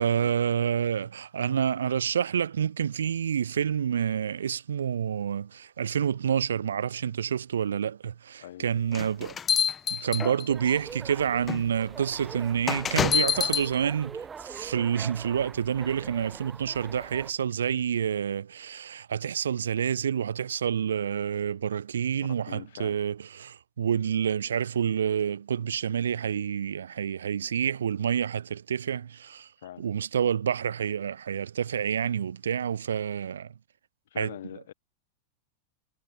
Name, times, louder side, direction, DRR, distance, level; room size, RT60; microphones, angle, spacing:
voice 1, 0.0-9.4 9.9-29.5 29.8-33.5 34.2-34.4, right 8 dB, 65° right, 0.5 m, -28 dB
sound 1, 8.9-10.7 11.5-11.6 12.7-13.7, left 7 dB, 20° left, 0.8 m, -26 dB
sound 2, 10.5-17.3, right 6 dB, 20° right, 2.4 m, -43 dB
voice 2, 22.1-23.0 29.6-29.9 34.1-34.7, left 12 dB, 60° left, 7.4 m, -43 dB
figure-of-eight pair, 90°, 0 cm